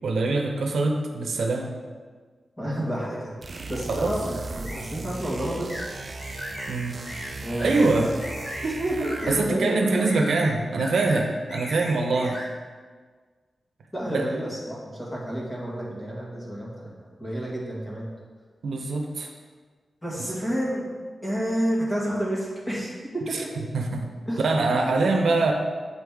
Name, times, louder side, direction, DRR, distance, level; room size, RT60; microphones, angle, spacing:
voice 1, 0.0-1.7 3.9-4.1 6.7-8.1 9.3-12.4 14.1-14.3 18.6-19.3 23.3-23.4 23.7-24.1 24.4-25.5, right 3 dB, 90° right, 2 dB, 0.7 m, -24 dB
voice 2, 2.6-5.8 7.4-8.1 8.6-10.1 11.9-12.0 13.9-16.9 17.2-18.1 20.0-20.9 21.2-23.5 24.3-24.5 24.8-25.0, right 1 dB, 15° left, -5 dB, 1.7 m, -30 dB
sound 1, 3.4-9.6, right 3 dB, 40° right, 0.4 m, -37 dB
sound 2, 4.6-4.9 5.7-5.9 6.2-6.7 7.0-7.3 7.6-7.9 8.2-8.6 9.0-9.4 9.9-10.5 10.8-11.2 11.5-12.5, equal, 90° left, 2.0 m, -37 dB
8.6 x 4.1 x 3.5 m, 1.5 s
wide cardioid pair, 150°, 0 cm